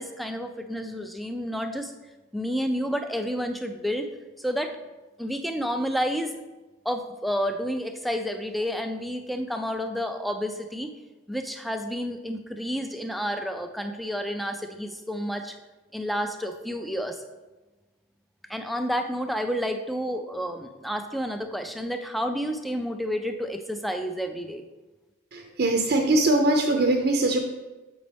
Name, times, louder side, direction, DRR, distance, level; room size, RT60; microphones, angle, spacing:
voice 1, 0.0-1.9 2.3-4.1 4.4-4.7 5.2-6.4 6.8-10.9 11.3-15.6 15.9-17.2 18.5-24.6, equal, ahead, 6 dB, 0.4 m, -30 dB
voice 2, 25.3-27.4, right 2 dB, 55° right, 2 dB, 0.6 m, -22 dB
7.2 x 5.1 x 3.4 m, 1.2 s
head